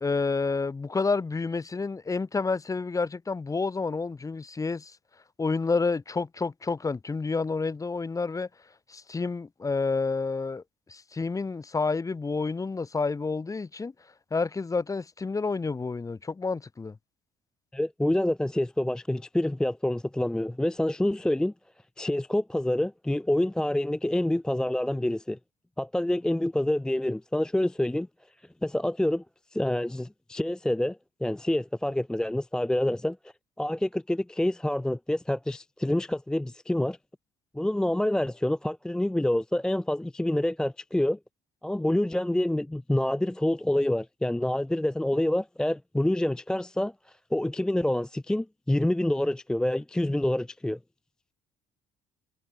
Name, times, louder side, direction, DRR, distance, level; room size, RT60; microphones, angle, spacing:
voice 1, 0.0-4.9 5.4-8.5 8.9-10.6 10.9-13.9 14.3-17.0, left 4 dB, 20° left, 1.1 m, -29 dB
voice 2, 17.7-21.5 22.0-25.4 25.8-28.1 28.6-29.2 29.5-33.2 33.6-37.0 37.5-41.2 41.6-50.8, left 1 dB, 5° left, 0.3 m, -27 dB
cardioid pair, 110°, 17 cm